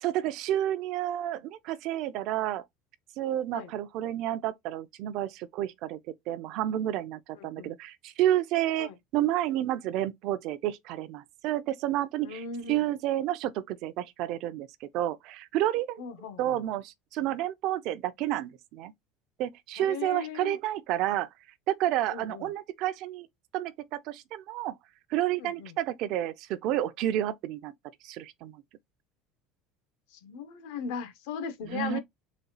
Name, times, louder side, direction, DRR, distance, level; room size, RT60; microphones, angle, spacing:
voice 1, 0.0-2.6 3.2-6.0 6.3-16.0 16.4-18.9 19.4-21.3 21.7-23.3 23.5-24.8 25.1-27.7 28.0-28.6 31.6-32.0, right 13 dB, 50° right, 0.5 m, -30 dB
voice 2, 7.4-7.7 8.8-8.9 12.2-12.8 16.0-16.6 19.8-20.6 22.1-22.4 25.4-25.7 30.1-32.0, left 6 dB, 80° left, 0.9 m, -38 dB
4.1 x 2.3 x 3.9 m
cardioid pair, 165°, 0 cm